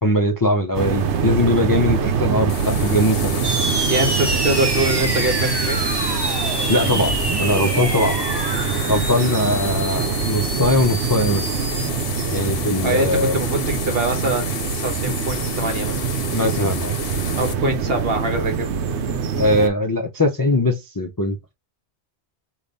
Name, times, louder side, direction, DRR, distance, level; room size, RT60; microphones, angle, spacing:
voice 1, 0.0-3.5 6.7-8.2 8.9-11.5 12.3-13.4 16.3-16.9 19.4-21.5, left 1 dB, 30° left, 0.4 m, -21 dB
sound 1, 0.7-19.7, right 6 dB, 85° right, 1.0 m, -24 dB
sound 2, 2.5-17.5, left 7 dB, 60° left, 0.9 m, -32 dB
sound 3, 3.4-11.9, right 3 dB, 25° right, 0.6 m, -27 dB
voice 2, 3.9-5.8 12.8-16.0 17.4-18.7, right 2 dB, 60° right, 1.4 m, -24 dB
5.1 x 2.4 x 4.0 m
omnidirectional pair, 1.1 m